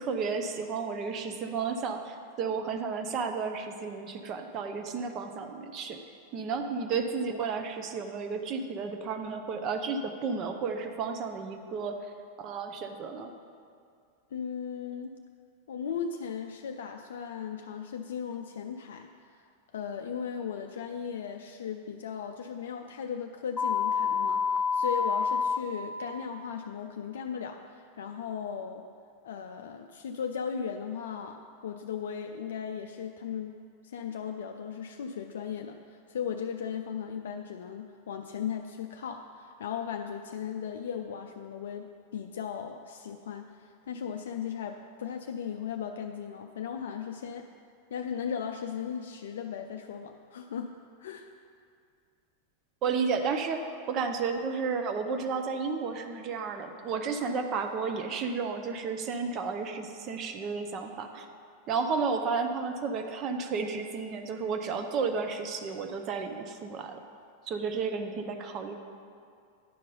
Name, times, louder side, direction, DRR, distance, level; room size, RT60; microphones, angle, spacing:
voice 1, 0.0-6.0 6.3-12.0 12.4-13.3 52.8-61.3 61.7-67.0 67.5-68.8, right 5 dB, 35° right, 6 dB, 0.6 m, -32 dB
voice 2, 14.3-15.2 15.7-19.1 19.7-28.9 29.2-31.4 31.6-33.6 33.8-47.5 47.9-51.3, left 7 dB, 60° left, 4 dB, 0.4 m, -37 dB
sound 1, 23.6-25.6, left 6 dB, 15° left, 0.6 m, -27 dB
10.0 x 5.2 x 5.5 m, 2.3 s
figure-of-eight pair, 90°, 0 cm